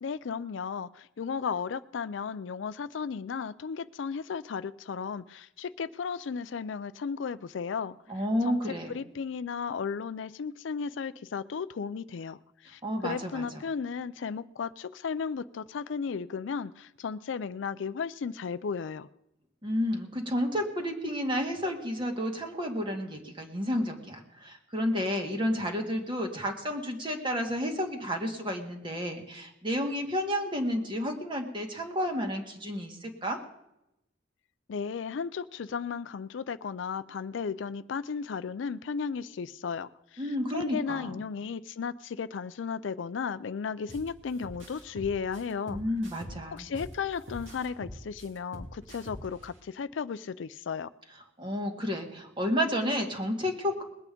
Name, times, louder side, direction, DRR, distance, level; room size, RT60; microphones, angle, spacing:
voice 1, 0.0-8.0 8.4-8.6 8.9-19.1 34.7-40.2 40.5-45.8 46.5-50.9, left 6 dB, 75° left, 14 dB, 0.4 m, -35 dB
voice 2, 8.1-8.9 12.8-13.7 19.6-33.4 40.2-41.2 45.7-46.7 51.4-53.8, equal, 25° right, 3 dB, 1.8 m, -31 dB
sound 1, 43.9-44.1 44.4-46.9 47.3-49.4, equal, 85° right, 2.4 m, -43 dB
20.5 x 8.4 x 5.2 m, 0.86 s
head